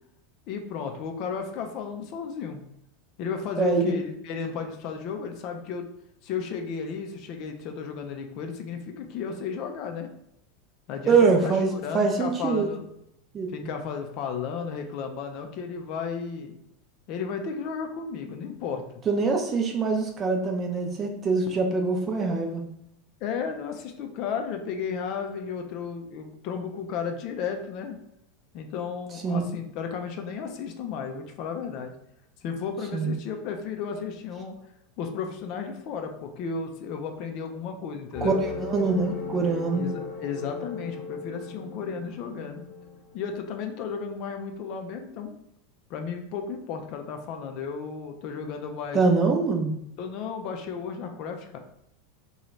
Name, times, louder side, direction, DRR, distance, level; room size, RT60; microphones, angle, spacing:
voice 1, 0.5-2.6 3.2-5.9 6.2-10.1 10.9-12.8 13.5-16.6 17.1-18.8 23.2-28.0 28.5-31.9 32.4-34.6 35.0-38.4 39.7-42.6 43.1-45.3 45.9-49.0 50.0-51.6, left 6 dB, 50° left, 4 dB, 0.5 m, -34 dB
voice 2, 11.1-12.7 13.3-13.5 19.1-22.6 29.2-29.4 32.9-33.1 38.2-39.9 48.9-49.7, right 4 dB, 30° right, 3 dB, 0.6 m, -24 dB
sound 1, 38.1-43.4, left 5 dB, 10° left, 1.0 m, -37 dB
2.8 x 2.3 x 3.1 m, 0.78 s
figure-of-eight pair, 85°, 0 cm